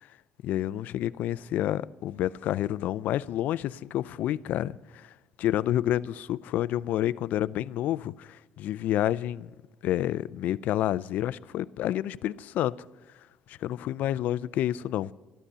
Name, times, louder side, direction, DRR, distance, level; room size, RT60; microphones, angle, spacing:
voice 1, 0.4-4.7 5.0-5.1 5.4-9.5 9.8-12.8 13.5-15.1, left 12 dB, 60° left, 0.4 m, -29 dB
13.0 x 12.5 x 6.8 m
cardioid pair, 155°, 3 cm